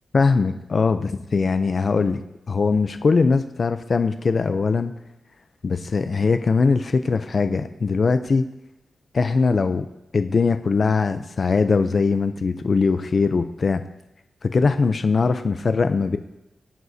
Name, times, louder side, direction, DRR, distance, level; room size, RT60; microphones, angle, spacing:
voice 1, 0.1-2.2 2.5-4.9 5.6-8.4 9.1-9.9 10.1-13.8 14.4-16.2, left 4 dB, 45° left, 9 dB, 0.6 m, -21 dB
22.0 x 9.3 x 2.8 m, 0.92 s
wide cardioid pair, 110°, 0 cm